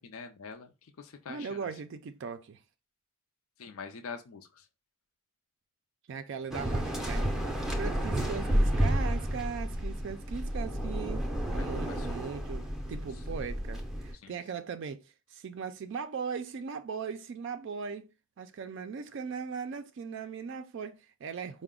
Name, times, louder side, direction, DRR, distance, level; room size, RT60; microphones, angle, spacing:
voice 1, 0.0-1.7 3.6-4.7 11.6-12.1 14.2-14.4, left 5 dB, 75° left, 0.5 m, -45 dB
voice 2, 1.3-2.6 6.1-11.3 11.5-18.1 18.4-21.6, right 6 dB, 55° right, 0.3 m, -39 dB
Waves surf, 6.5-14.1, equal, ahead, 0.5 m, -31 dB
4.7 x 2.1 x 3.6 m
head